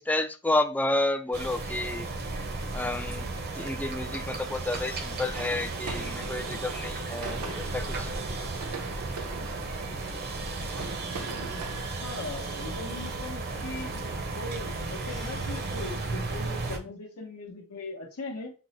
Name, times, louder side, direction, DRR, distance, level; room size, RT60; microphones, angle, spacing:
voice 1, 0.0-2.1 2.7-3.3 3.6-8.1, left 2 dB, 5° left, 0.3 m, -30 dB
sound 1, 1.3-16.8, right 3 dB, 45° right, 0.7 m, -34 dB
sound 2, 5.3-11.8, right 3 dB, 75° right, 0.8 m, -41 dB
voice 2, 11.3-14.1 14.3-18.5, left 3 dB, 80° left, 0.8 m, -40 dB
5.9 x 2.1 x 4.0 m
head